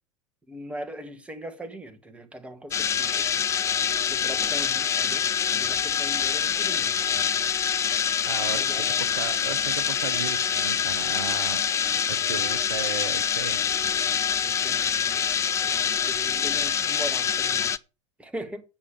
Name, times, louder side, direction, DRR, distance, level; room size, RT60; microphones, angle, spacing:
voice 1, 0.5-3.5 4.1-5.2 5.5-6.9 8.5-9.0 11.9-12.1 14.4-15.2 15.6-17.8 18.2-18.6, equal, 5° right, 1.6 m, -40 dB
sound 1, 2.7-17.8, left 8 dB, 20° left, 0.4 m, -25 dB
voice 2, 8.2-11.6 12.1-13.8, right 8 dB, 65° right, 0.8 m, -35 dB
8.6 x 6.5 x 7.1 m
figure-of-eight pair, 80°, 16 cm